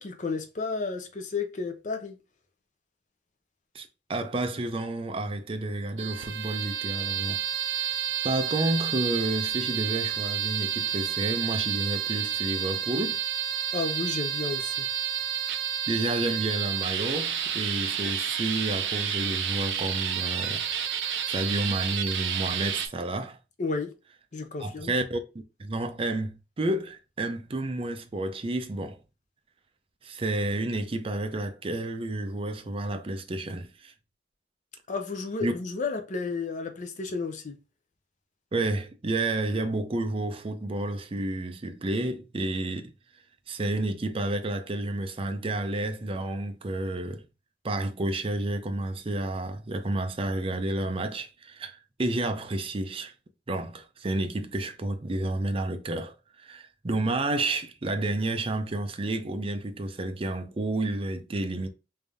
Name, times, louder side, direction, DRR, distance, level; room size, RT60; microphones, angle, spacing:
voice 1, 0.0-2.2 13.7-14.9 23.6-23.9 24.3-24.9 34.9-37.6, left 4 dB, 45° left, 0.6 m, -32 dB
voice 2, 3.7-7.4 7.7-13.2 15.9-20.7 21.3-23.4 24.6-25.2 25.6-29.0 30.0-33.9 35.4-35.5 38.5-42.9 43.5-47.2 47.6-53.1 53.5-61.7, right 2 dB, 30° right, 0.5 m, -30 dB
sound 1, 6.0-22.9, right 8 dB, 85° right, 0.6 m, -30 dB
3.4 x 2.6 x 3.4 m
head